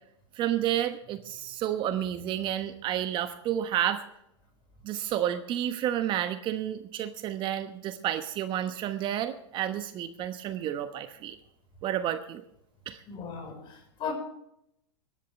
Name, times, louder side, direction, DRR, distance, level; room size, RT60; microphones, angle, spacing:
voice 1, 0.4-4.0 4.8-11.4 11.8-12.4 12.9-13.0, right 11 dB, 35° right, 1.1 m, -30 dB
voice 2, 13.1-14.1, left 6 dB, 35° left, 5.2 m, -37 dB
23.0 x 11.5 x 3.3 m
hypercardioid pair, 120°, 15 cm